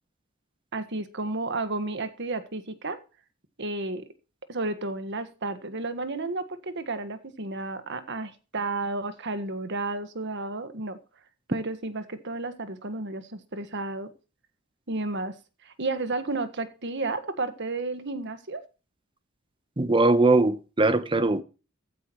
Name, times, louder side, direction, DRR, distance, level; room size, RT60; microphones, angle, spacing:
voice 1, 0.7-3.0 3.6-4.0 4.5-11.0 11.5-14.1 14.9-15.3 15.6-18.6, right 2 dB, 60° right, 1.5 m, -32 dB
voice 2, 19.8-21.4, right 2 dB, 25° right, 1.0 m, -21 dB
15.0 x 13.5 x 3.1 m
head